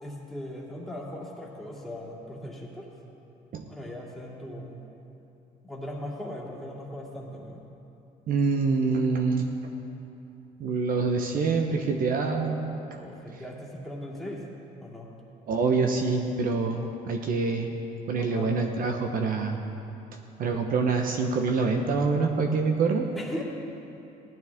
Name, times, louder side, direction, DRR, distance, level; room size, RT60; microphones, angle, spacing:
voice 1, 0.0-2.9 3.7-4.8 5.6-7.6 12.9-14.5 14.8-15.1 18.1-18.6 23.1-23.4, left 1 dB, ahead, -5 dB, 2.6 m, -39 dB
voice 2, 8.3-9.5 10.6-12.6 12.9-13.0 15.5-17.7 18.1-19.6 20.4-23.1, right 4 dB, 55° right, 3 dB, 1.0 m, -26 dB
16.5 x 12.0 x 3.6 m, 2.8 s
cardioid pair, 110°, 17 cm